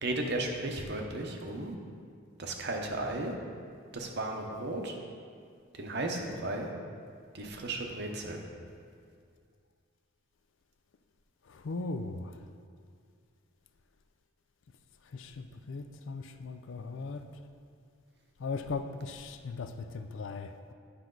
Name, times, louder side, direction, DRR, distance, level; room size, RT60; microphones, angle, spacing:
voice 1, 0.0-1.7 2.4-3.3 3.9-5.0 5.8-6.7 7.3-8.4, right 2 dB, 50° right, 2 dB, 0.8 m, -34 dB
voice 2, 11.5-12.3 15.1-17.2 18.4-20.7, left 4 dB, 60° left, 8 dB, 0.4 m, -38 dB
9.9 x 5.9 x 3.9 m, 2.2 s
head